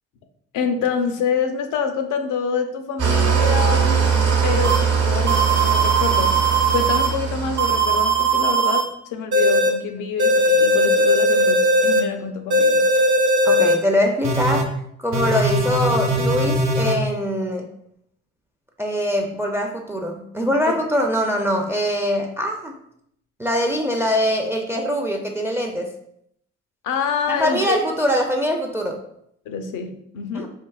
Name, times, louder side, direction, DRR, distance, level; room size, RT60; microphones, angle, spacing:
voice 1, 0.5-6.4 6.7-12.9 20.7-20.8 26.8-27.8 29.5-30.5, left 6 dB, 85° left, 6 dB, 0.6 m, -26 dB
Engine starting / Idling, 3.0-8.4, right 6 dB, 50° right, 0.9 m, -21 dB
sound 1, 4.6-4.8 5.3-7.1 7.6-8.8 9.3-9.7 10.2-12.0 12.5-13.7 14.2-14.6 15.1-16.9, right 1 dB, 75° right, 0.9 m, -19 dB
voice 2, 13.5-17.7 18.8-22.7 23.4-25.9 27.4-29.0 30.3-30.5, equal, 10° right, 3 dB, 0.4 m, -23 dB
4.6 x 2.7 x 2.3 m, 0.71 s
cardioid pair, 90°, 30 cm